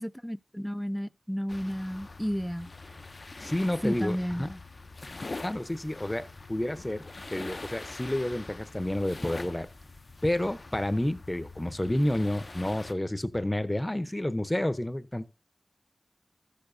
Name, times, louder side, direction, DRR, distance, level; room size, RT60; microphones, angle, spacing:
voice 1, 0.0-2.7 3.8-4.4, equal, ahead, 0.4 m, -32 dB
sound 1, 1.5-12.9, left 3 dB, 60° left, 0.6 m, -44 dB
voice 2, 3.4-4.6 5.4-9.7 10.2-15.2, left 1 dB, 20° left, 0.8 m, -30 dB
13.5 x 6.9 x 2.7 m
wide cardioid pair, 45°, 0 cm